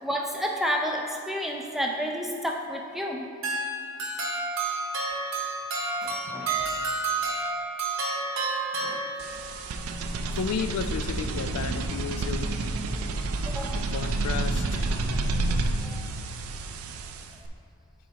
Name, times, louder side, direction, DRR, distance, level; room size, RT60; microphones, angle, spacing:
voice 1, 0.0-3.3 6.0-6.6 8.8-9.1 13.4-13.8 15.3-16.0, equal, ahead, 0 dB, 0.4 m, -31 dB
sound 1, 3.4-9.6, right 3 dB, 65° right, 0.8 m, -30 dB
voice 2, 6.3-6.9 10.4-12.6 13.7-14.9, left 6 dB, 90° left, 11 dB, 0.3 m, -33 dB
sound 2, 9.2-17.5, right 2 dB, 85° right, 0.4 m, -29 dB
10.0 x 4.1 x 2.8 m, 2.5 s
head